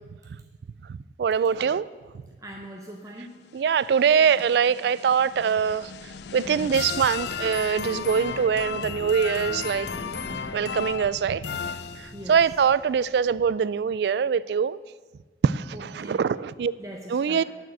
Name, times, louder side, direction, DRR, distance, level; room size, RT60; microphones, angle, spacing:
voice 1, 0.9-1.9 3.5-5.9 6.3-9.9 10.5-11.4 12.3-14.8 15.4-16.7 17.1-17.4, right 7 dB, 70° right, 18 dB, 0.3 m, -23 dB
voice 2, 2.4-3.4 12.1-12.4 15.7-16.3 16.8-17.4, right 1 dB, 20° right, 0 dB, 0.8 m, -41 dB
sound 1, 3.5-12.5, left 6 dB, 70° left, 0.4 m, -35 dB
sound 2, 5.5-13.8, equal, 10° left, 1.0 m, -46 dB
9.2 x 6.2 x 7.9 m, 1.4 s
head